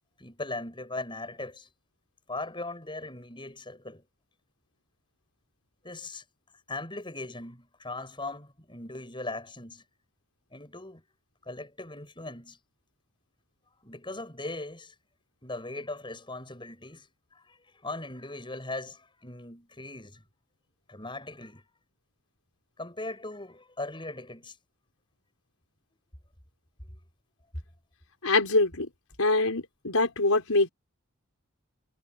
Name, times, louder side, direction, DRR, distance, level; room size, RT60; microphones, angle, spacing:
voice 1, 0.2-1.7 2.3-4.0 5.8-6.2 6.7-9.8 10.5-11.0 11.5-12.6 13.8-14.9 15.4-20.2 20.9-21.6 22.8-24.6, left 2 dB, 20° left, 7.5 m, -39 dB
voice 2, 28.2-28.9 29.2-30.7, left 2 dB, 80° left, 4.8 m, -24 dB
head